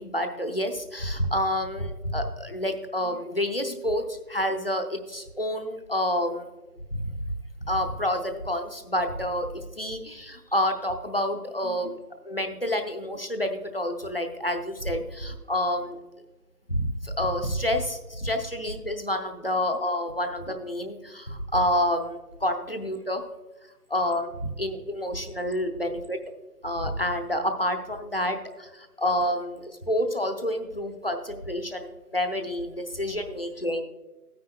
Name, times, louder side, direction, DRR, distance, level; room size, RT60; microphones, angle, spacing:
voice 1, 0.0-6.5 6.9-7.0 7.6-12.0 12.2-16.0 16.7-23.2 23.9-26.2 26.6-33.8, left 1 dB, 40° left, 5 dB, 0.7 m, -28 dB
13.0 x 9.5 x 2.2 m, 1.2 s
figure-of-eight pair, 175°, 46 cm